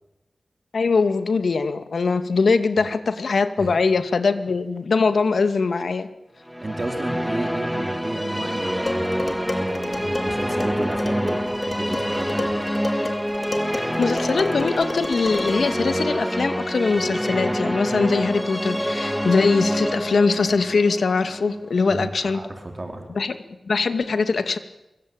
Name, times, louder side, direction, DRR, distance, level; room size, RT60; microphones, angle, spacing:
voice 1, 0.7-6.1 14.0-22.4 23.1-23.3 23.7-24.6, left 4 dB, 75° left, 9 dB, 2.3 m, -22 dB
sound 1, 6.5-22.5, equal, ahead, 2.1 m, -26 dB
voice 2, 6.6-12.6 21.9-23.1, right 2 dB, 35° right, 4 dB, 4.4 m, -32 dB
Dishes pots and pans, 8.9-15.7, left 2 dB, 40° left, 3.9 m, -33 dB
26.0 x 24.0 x 9.0 m, 0.96 s
wide cardioid pair, 90°, 0 cm